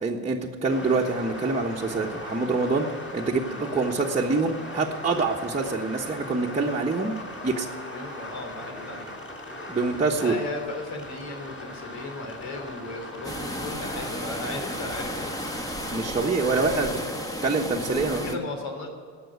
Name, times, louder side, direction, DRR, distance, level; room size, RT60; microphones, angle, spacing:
voice 1, 0.0-2.9 3.1-7.1 7.4-7.7 9.7-10.4 15.9-17.0 17.4-18.4, right 3 dB, 15° right, -3 dB, 1.3 m, -25 dB
sound 1, 0.7-16.0, left 1 dB, 30° left, 4.2 m, -39 dB
voice 2, 3.5-3.8 7.9-9.1 10.1-15.3 16.3-17.5 17.8-18.9, left 2 dB, 70° left, 2 dB, 3.5 m, -36 dB
sound 2, 13.2-18.4, equal, 10° left, 1.3 m, -33 dB
18.0 x 6.3 x 9.5 m, 2.1 s
supercardioid pair, 85°, 41 cm